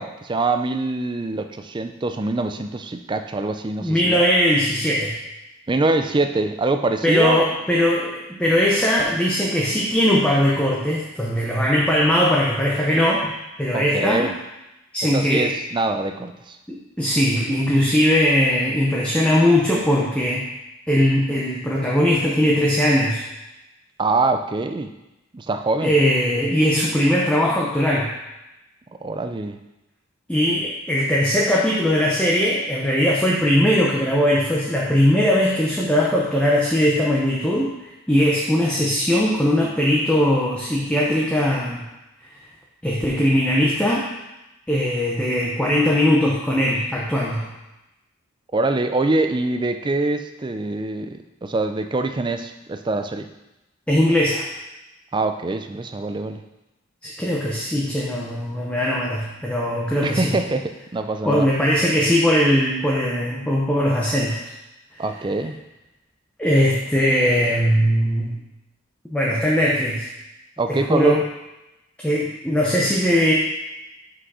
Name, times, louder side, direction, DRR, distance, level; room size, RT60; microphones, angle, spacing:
voice 1, 0.0-4.3 5.7-7.4 13.7-14.4 15.1-16.6 24.0-24.9 25.3-25.9 29.0-29.6 48.5-53.3 55.1-56.4 60.0-61.5 65.0-65.6 70.6-71.2, right 2 dB, 20° right, 7 dB, 0.4 m, -24 dB
voice 2, 3.8-5.2 7.0-14.3 14.9-15.5 16.7-20.4 20.9-23.2 25.8-28.1 30.3-41.8 42.8-44.1 44.7-47.5 53.9-54.5 57.0-60.4 61.3-64.4 64.9-65.0 66.4-68.3 69.1-70.0 70.7-71.2 72.0-73.3, equal, 5° left, -4 dB, 0.7 m, -20 dB
6.1 x 5.0 x 4.8 m, 0.97 s
head